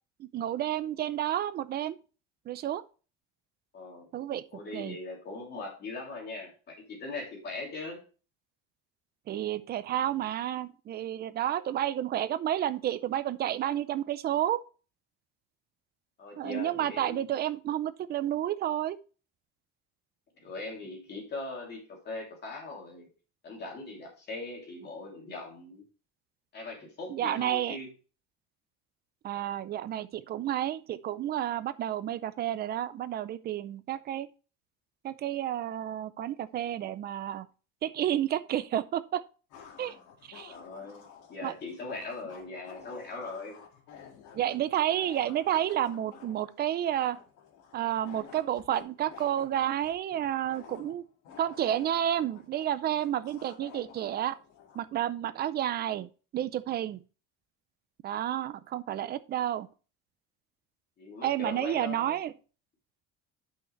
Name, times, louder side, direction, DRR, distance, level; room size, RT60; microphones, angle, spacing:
voice 1, 0.2-2.0 2.5-2.8 4.1-4.4 4.7-5.0 9.3-14.6 16.4-19.0 27.1-27.8 29.2-34.3 35.0-37.5 37.8-39.2 39.8-39.9 40.3-40.5 41.4-41.5 44.3-47.2 47.7-51.0 51.4-54.3 54.7-57.0 58.0-59.7 61.2-62.3, right 11 dB, 35° right, 0.4 m, -30 dB
voice 2, 3.7-4.1 4.5-8.0 16.2-17.3 20.4-23.1 23.4-25.8 26.5-27.9 40.5-43.6 61.0-62.1, left 3 dB, 35° left, 2.8 m, -40 dB
sound 1, 38.5-38.6 39.5-54.9, left 7 dB, 75° left, 1.9 m, -52 dB
9.7 x 5.8 x 3.1 m
cardioid pair, 165°, 31 cm